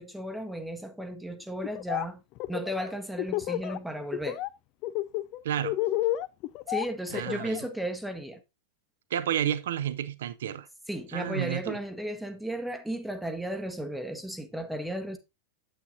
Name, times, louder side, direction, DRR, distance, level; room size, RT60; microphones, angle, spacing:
voice 1, 0.0-2.2 2.5-4.4 6.7-8.4 10.9-15.2, right 1 dB, ahead, 0.9 m, -34 dB
Laughter, 1.6-2.1 2.4-3.8 4.1-4.5 4.8-7.7, left 15 dB, 40° left, 0.4 m, -30 dB
voice 2, 5.4-5.8 7.1-7.6 9.1-10.7 11.1-11.8, right 10 dB, 60° right, 0.7 m, -31 dB
8.9 x 8.1 x 2.6 m
figure-of-eight pair, 90°, 0 cm